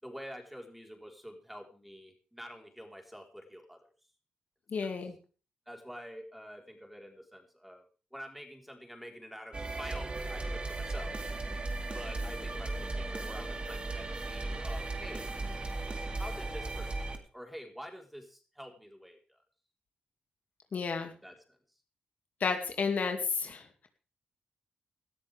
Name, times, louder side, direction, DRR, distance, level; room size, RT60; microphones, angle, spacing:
voice 1, 0.0-3.9 5.7-11.2 11.9-15.3 16.2-19.4 21.2-21.6, equal, 5° right, 3 dB, 4.3 m, -47 dB
voice 2, 4.7-5.1 20.7-21.1 22.4-23.9, left 5 dB, 55° left, 5 dB, 2.5 m, -32 dB
sound 1, 9.5-17.2, right 2 dB, 35° right, 3.3 m, -36 dB
19.0 x 13.0 x 3.6 m, 0.36 s
cardioid pair, 95°, 3 cm